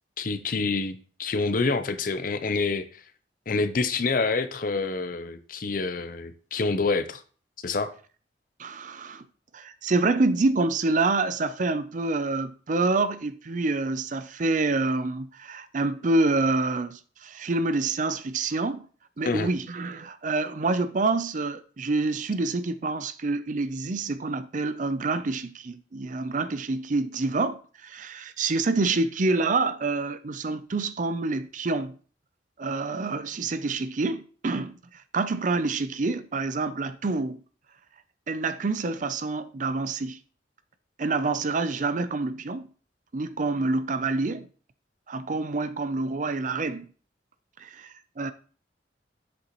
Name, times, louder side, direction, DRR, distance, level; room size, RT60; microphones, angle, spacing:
voice 1, 0.2-3.0 3.5-7.2 7.6-7.9 19.2-19.5, left 3 dB, 50° left, 0.6 m, -27 dB
voice 2, 8.6-9.2 9.5-18.9 19.2-32.0 32.6-34.7 35.1-37.4 38.3-40.2 41.0-42.7 43.1-44.5 45.1-46.9 47.6-48.3, right 3 dB, 45° right, 0.5 m, -27 dB
7.8 x 6.5 x 3.0 m
head